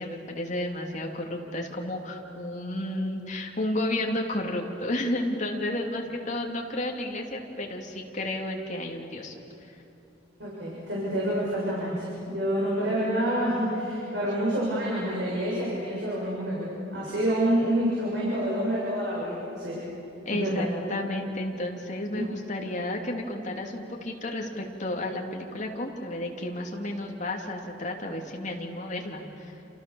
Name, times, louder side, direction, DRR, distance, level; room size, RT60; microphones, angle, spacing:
voice 1, 0.0-9.3 20.2-29.5, left 1 dB, 40° left, 1 dB, 3.0 m, -32 dB
voice 2, 10.4-19.8 20.3-20.7 22.2-22.3, equal, 65° right, -6 dB, 6.9 m, -28 dB
29.0 x 28.0 x 7.2 m, 3.0 s
head